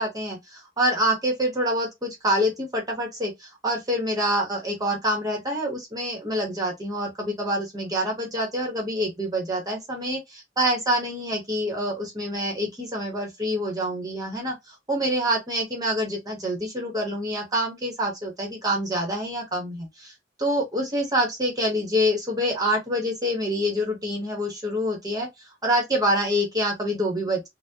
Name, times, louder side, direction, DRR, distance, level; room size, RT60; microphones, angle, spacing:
voice 1, 0.0-10.2 10.6-14.6 14.9-20.1 20.4-25.3 25.6-27.5, equal, 20° right, 1.1 m, -26 dB
4.0 x 2.1 x 2.7 m
head